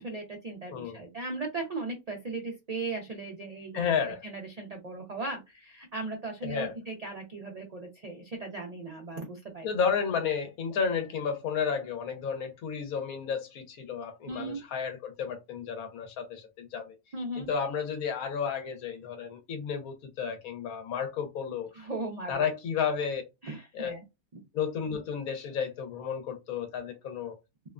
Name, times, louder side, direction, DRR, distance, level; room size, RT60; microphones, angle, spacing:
voice 1, 0.0-3.9 4.2-9.7 14.3-14.6 17.1-17.5 21.7-22.5 23.4-24.0, right 3 dB, 75° right, 0.3 m, -37 dB
voice 2, 3.7-4.2 6.4-6.8 9.6-17.0 17.4-21.7 22.3-23.2 23.7-23.9 24.5-27.3, left 6 dB, 85° left, 1.1 m, -32 dB
2.7 x 2.1 x 2.3 m
omnidirectional pair, 1.5 m